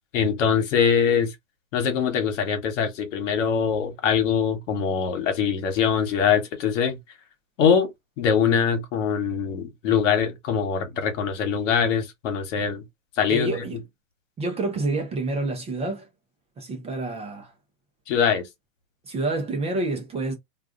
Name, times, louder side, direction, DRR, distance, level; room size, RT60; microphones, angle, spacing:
voice 1, 0.1-1.3 1.7-7.0 7.6-12.8 13.2-13.6 18.1-18.5, left 7 dB, 65° left, 1.3 m, -23 dB
voice 2, 13.3-13.8 14.4-16.1 16.6-17.5 19.0-20.3, right 2 dB, 15° right, 0.6 m, -28 dB
2.4 x 2.3 x 3.6 m
hypercardioid pair, 125°, 40 cm